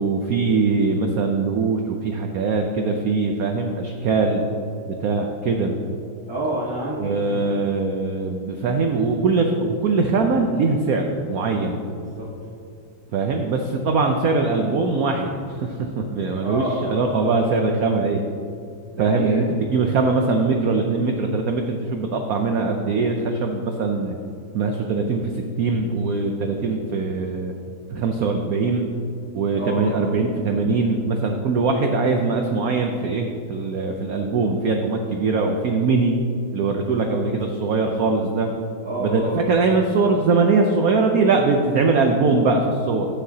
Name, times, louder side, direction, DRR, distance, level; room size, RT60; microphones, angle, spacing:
voice 1, 0.0-4.4 4.9-5.8 7.0-11.8 13.1-18.2 19.0-19.4 19.7-24.2 24.5-27.5 27.9-28.9 29.3-36.1 36.5-38.5 39.0-43.1, right 4 dB, 65° right, 3 dB, 0.9 m, -22 dB
voice 2, 6.3-7.5 12.0-12.3 16.4-17.6 19.0-19.4 29.5-30.2 37.1-37.2 38.8-39.4, right 1 dB, 15° right, -7 dB, 1.1 m, -29 dB
13.5 x 9.2 x 2.8 m, 2.5 s
omnidirectional pair, 2.1 m